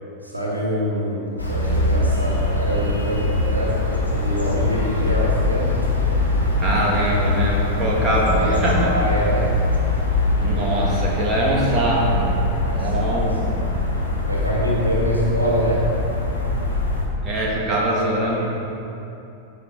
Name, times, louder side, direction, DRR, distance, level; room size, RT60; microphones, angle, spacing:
voice 1, 0.2-5.8 8.3-9.5 12.6-13.6 14.3-15.9, right 1 dB, 85° right, -4 dB, 1.9 m, -25 dB
sound 1, 1.4-17.0, left 2 dB, 90° left, 1.7 m, -22 dB
voice 2, 6.6-8.9 10.4-12.4 12.7-13.4 17.2-18.5, right 1 dB, 25° right, -4 dB, 2.5 m, -22 dB
16.0 x 6.6 x 4.0 m, 2.8 s
figure-of-eight pair, 90°, 0 cm